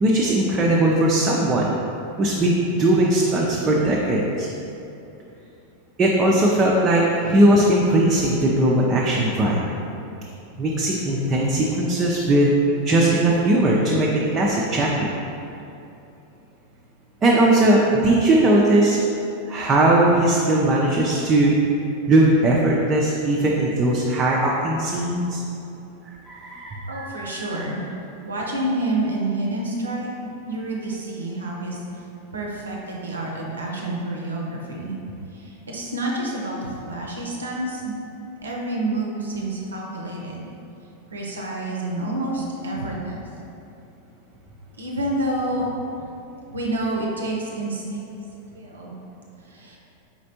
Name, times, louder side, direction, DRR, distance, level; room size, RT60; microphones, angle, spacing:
voice 1, 0.0-1.7 2.2-4.5 6.0-9.6 10.6-12.5 12.8-15.1 17.2-19.0 19.5-21.5 22.1-25.4 26.3-27.6 30.5-30.6, right 1 dB, 25° right, -4 dB, 0.5 m, -19 dB
voice 2, 26.9-27.8 28.2-30.1 30.5-32.0 32.3-34.9 35.3-37.9 38.4-40.5 41.1-43.3 44.8-45.7 46.0-46.1 46.5-48.2 48.5-48.9 49.4-49.8, right 1 dB, 70° right, -2 dB, 0.6 m, -28 dB
4.3 x 4.1 x 2.8 m, 2.8 s
figure-of-eight pair, 90°, 0 cm